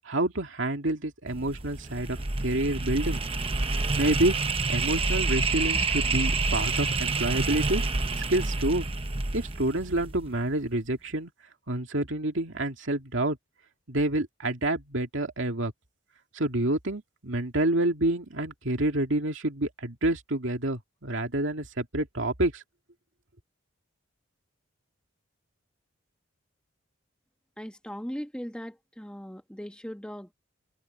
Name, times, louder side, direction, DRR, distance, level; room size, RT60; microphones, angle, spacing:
voice 1, 0.0-3.2 3.7-4.4 4.7-7.8 8.2-8.9 9.3-11.3 11.7-13.4 13.9-15.7 16.3-22.6, right 1 dB, 70° right, 2.3 m, -28 dB
sound 1, 1.3-10.4, right 3 dB, 25° right, 0.9 m, -28 dB
voice 2, 27.6-30.3, equal, 5° left, 1.7 m, -39 dB
head